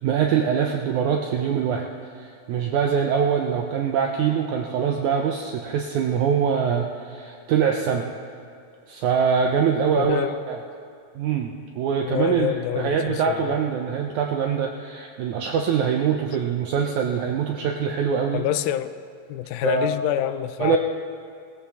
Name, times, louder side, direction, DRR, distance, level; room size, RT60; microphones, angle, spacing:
voice 1, 0.0-1.9 2.2-8.1 8.9-10.6 11.2-18.4 19.6-20.0 20.6-20.8, right 7 dB, 80° right, 2 dB, 1.7 m, -23 dB
voice 2, 10.0-10.4 12.0-13.6 18.3-18.9 19.3-20.8, left 12 dB, 85° left, 12 dB, 2.3 m, -26 dB
18.0 x 14.0 x 3.5 m, 2.4 s
omnidirectional pair, 4.2 m